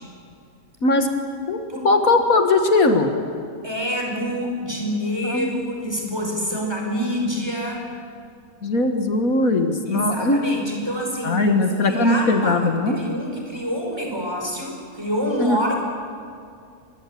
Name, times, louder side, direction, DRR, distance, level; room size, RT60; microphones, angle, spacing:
voice 1, 1.8-3.1 5.3-5.8 6.1-6.2 8.6-10.4 11.2-13.0 15.4-15.6, left 2 dB, 70° left, 6 dB, 2.1 m, -19 dB
voice 2, 3.6-7.9 9.9-15.8, equal, 15° right, 0 dB, 5.4 m, -27 dB
25.0 x 21.5 x 8.5 m, 2.3 s
omnidirectional pair, 1.5 m